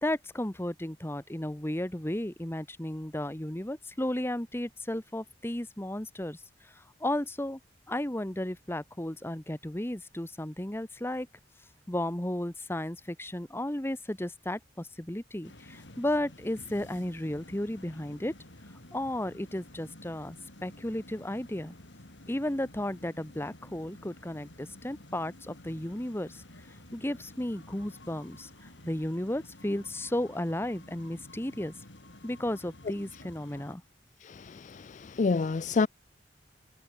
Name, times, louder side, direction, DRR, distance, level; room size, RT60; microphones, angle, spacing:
voice 1, 0.0-6.4 7.0-7.6 7.9-11.3 11.9-18.3 18.9-20.4 20.6-21.8 22.3-26.4 26.9-31.7 32.2-33.8, left 1 dB, 15° left, 1.2 m, -34 dB
sound 1, 15.4-33.8, left 1 dB, 80° left, 3.7 m, -51 dB
voice 2, 34.2-35.9, left 4 dB, 40° left, 0.4 m, -29 dB
head